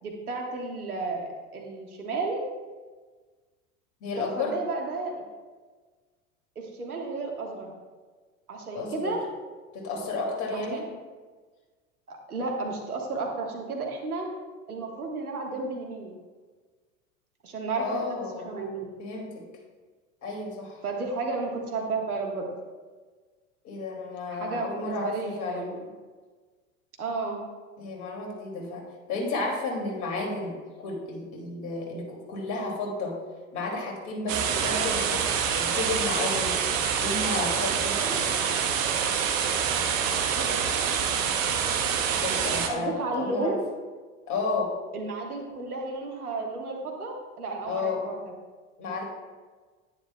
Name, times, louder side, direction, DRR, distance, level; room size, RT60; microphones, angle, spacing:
voice 1, 0.0-2.4 4.4-5.2 6.5-7.7 8.5-9.2 10.5-10.9 12.1-14.3 14.7-16.1 17.4-18.9 20.8-22.5 24.3-25.9 27.0-27.4 40.3-40.6 42.7-43.6 44.9-48.3, right 3 dB, 80° right, 0 dB, 1.6 m, -32 dB
voice 2, 4.0-4.6 8.7-9.1 9.7-10.8 17.8-18.5 19.0-19.4 20.2-20.8 23.6-25.7 27.8-28.8 29.1-33.2 33.5-35.3 35.5-36.6 37.0-38.2 42.2-43.6 44.3-44.7 47.6-48.0 48.8-49.0, left 3 dB, 40° left, -1 dB, 2.7 m, -32 dB
sound 1, 34.3-42.7, right 7 dB, 60° right, 1.0 m, -26 dB
10.5 x 9.4 x 2.3 m, 1.4 s
figure-of-eight pair, 80°, 43 cm